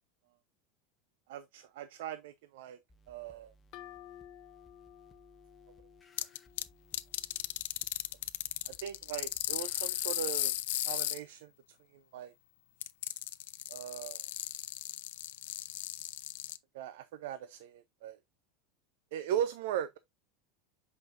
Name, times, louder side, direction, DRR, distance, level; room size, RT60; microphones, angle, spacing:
voice 1, 1.3-2.8 3.1-3.5 8.6-10.5 10.9-11.5 11.9-12.3 13.7-14.2 16.7-18.2 19.1-20.0, right 10 dB, 65° right, 0.7 m, -38 dB
sound 1, 2.9-10.1, equal, 10° left, 0.9 m, -64 dB
sound 2, 3.7-7.3, left 12 dB, 35° left, 0.7 m, -54 dB
sound 3, 6.2-6.6 6.9-11.2 12.8-16.6, left 14 dB, 85° left, 0.7 m, -35 dB
8.0 x 5.4 x 2.6 m
supercardioid pair, 175°, 0 cm